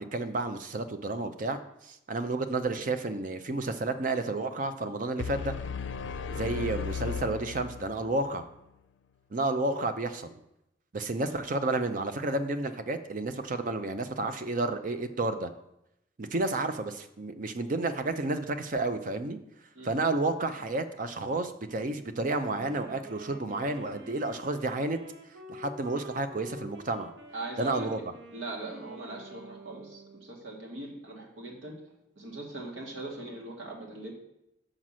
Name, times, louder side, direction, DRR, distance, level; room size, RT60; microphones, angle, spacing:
voice 1, 0.0-5.5 6.3-8.5 9.3-10.4 10.9-15.5 16.2-19.4 19.8-25.0 25.5-27.1 27.6-28.0, right 2 dB, 45° right, 9 dB, 0.5 m, -31 dB
sound 1, 5.2-8.2, left 6 dB, 75° left, 0.5 m, -35 dB
Wind instrument woodwind instrument, 22.4-30.5, right 1 dB, 65° right, 1.0 m, -48 dB
voice 2, 27.3-28.1 28.3-31.8 32.2-34.1, right 2 dB, 90° right, -2 dB, 1.9 m, -40 dB
5.8 x 5.0 x 6.2 m, 0.84 s
head